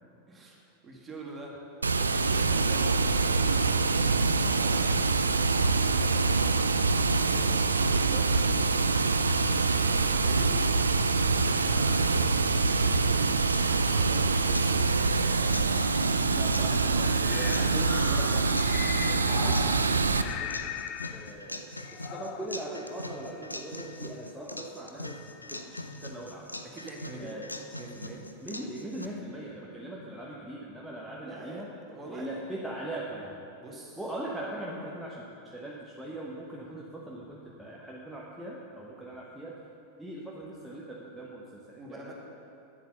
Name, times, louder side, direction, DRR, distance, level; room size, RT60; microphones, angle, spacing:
voice 1, 0.3-1.5 1.9-3.3 3.9-8.3 9.7-10.6 11.4-12.7 13.7-16.2 26.7-27.3 27.8-28.3 31.2-32.4 33.6-34.0 41.8-42.1, right 2 dB, 20° right, -2 dB, 2.0 m, -45 dB
Water, 1.8-20.2, right 4 dB, 75° right, 0.4 m, -25 dB
sound 1, 13.1-29.1, left 1 dB, 85° left, 0.5 m, -41 dB
voice 2, 16.3-20.6 21.1-26.5 27.2-27.5 28.4-31.7 32.1-33.4 34.0-39.6 40.0-42.1, right 1 dB, ahead, -5 dB, 1.1 m, -40 dB
sound 2, 17.0-21.4 21.8-22.5, left 11 dB, 40° left, 0.4 m, -39 dB
9.1 x 8.0 x 6.8 m, 2.7 s
figure-of-eight pair, 90°, 0 cm